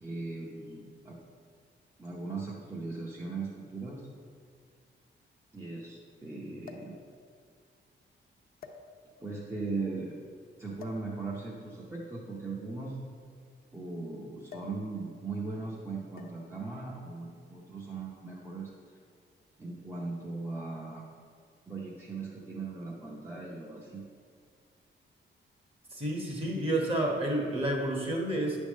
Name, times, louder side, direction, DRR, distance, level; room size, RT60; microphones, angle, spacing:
voice 1, 0.0-1.2 2.0-4.1 5.5-6.9 9.2-10.2 10.6-13.0 13.7-18.7 19.6-21.1 21.7-24.0, right 3 dB, 15° right, -5 dB, 0.8 m, -38 dB
sound 1, 2.9-3.0 4.1-4.2 4.4-4.5 6.6-7.0 7.8-8.0 8.6-9.3 10.8-11.1 12.2-13.9 14.5-14.9 15.1-15.4 16.2-16.5 17.5-17.8, left 5 dB, 45° left, 0.7 m, -49 dB
voice 2, 25.9-28.6, right 1 dB, 30° right, -1 dB, 1.3 m, -30 dB
9.4 x 3.5 x 6.3 m, 2.1 s
wide cardioid pair, 150°, 20 cm